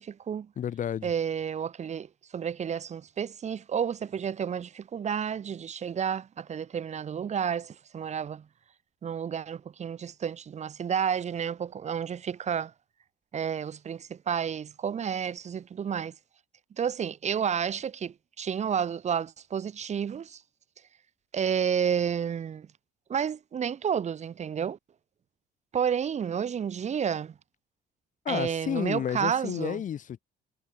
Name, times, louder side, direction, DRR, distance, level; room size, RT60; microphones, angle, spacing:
voice 1, 0.0-0.5 1.0-8.5 9.0-12.7 13.3-16.1 16.8-20.4 21.3-22.7 23.1-24.8 25.7-27.3 28.3-29.8, right 8 dB, 40° right, 2.6 m, -31 dB
voice 2, 0.6-1.1 28.2-30.2, left 9 dB, 50° left, 2.9 m, -31 dB
cardioid pair, 110°, 17 cm